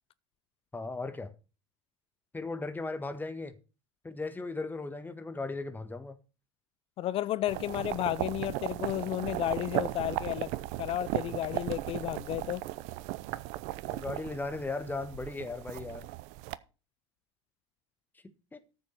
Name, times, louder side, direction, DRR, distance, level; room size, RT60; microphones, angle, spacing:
voice 1, 0.7-1.3 2.3-3.5 4.0-6.2 13.9-16.1 18.5-18.6, left 3 dB, 15° left, 1.6 m, -37 dB
voice 2, 7.0-10.5 10.8-12.6, left 14 dB, 40° left, 0.4 m, -32 dB
sound 1, 7.5-16.6, right 17 dB, 55° right, 0.7 m, -36 dB
14.0 x 7.4 x 4.4 m
figure-of-eight pair, 70°, 15 cm